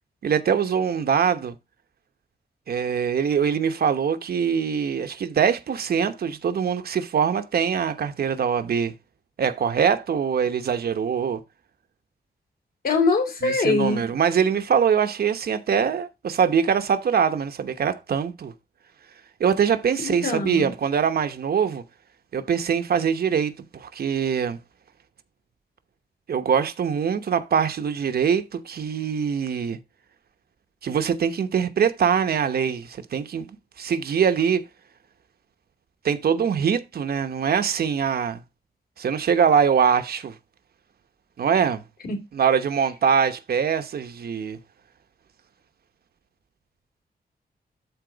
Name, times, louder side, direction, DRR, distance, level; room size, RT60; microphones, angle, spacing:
voice 1, 0.2-1.5 2.7-8.9 9.4-11.4 13.4-18.5 19.4-21.8 22.3-24.6 26.3-29.8 30.8-33.5 33.8-34.6 36.0-38.4 39.0-40.4 41.4-41.8 42.3-44.6, right 7 dB, 70° right, 1.0 m, -23 dB
voice 2, 12.8-14.0 20.0-20.7 42.1-42.2, left 3 dB, 65° left, 3.2 m, -23 dB
13.0 x 4.4 x 3.9 m
wide cardioid pair, 165°, 16 cm